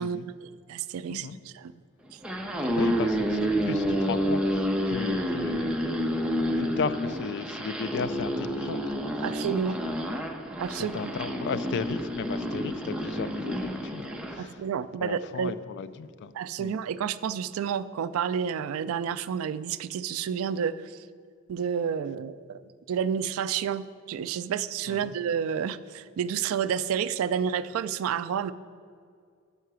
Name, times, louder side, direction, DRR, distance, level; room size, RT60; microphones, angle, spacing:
voice 1, 0.0-1.3 1.5-1.7 9.2-9.8 10.6-11.1 14.4-15.5 16.3-20.9 21.5-22.6 22.9-28.5, right 7 dB, 80° right, 16 dB, 0.3 m, -30 dB
sound 1, 2.1-14.4, equal, 5° right, 0.6 m, -29 dB
voice 2, 2.7-9.0 9.8-10.0 10.8-14.6 15.0-16.3 16.6-16.7 24.9-25.1, left 5 dB, 55° left, 13 dB, 0.3 m, -35 dB
5.7 x 5.6 x 6.2 m, 2.2 s
head